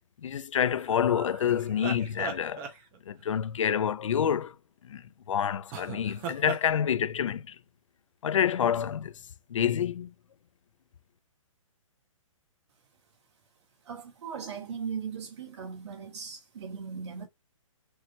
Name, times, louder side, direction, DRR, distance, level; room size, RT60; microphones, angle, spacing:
voice 1, 0.2-2.6 3.1-4.5 4.9-7.5 8.2-9.1 9.5-10.1, left 9 dB, 65° left, 0.6 m, -28 dB
sound 1, 0.5-3.3 5.7-6.7, right 5 dB, 15° right, 0.7 m, -39 dB
voice 2, 13.8-17.3, right 6 dB, 55° right, 2.4 m, -38 dB
6.2 x 3.0 x 2.9 m
hypercardioid pair, 170°, 17 cm